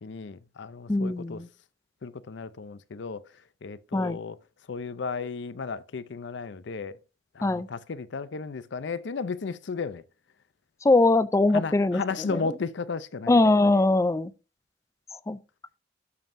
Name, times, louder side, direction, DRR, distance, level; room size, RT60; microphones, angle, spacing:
voice 1, 0.0-1.4 2.0-3.2 3.6-4.4 4.7-7.0 7.4-10.0 11.5-13.4, left 4 dB, 70° left, 0.5 m, -34 dB
voice 2, 0.9-1.5 3.9-4.2 7.4-7.7 10.8-12.6 13.3-14.3 15.3-15.4, left 2 dB, 15° left, 0.4 m, -22 dB
12.5 x 5.4 x 2.6 m
head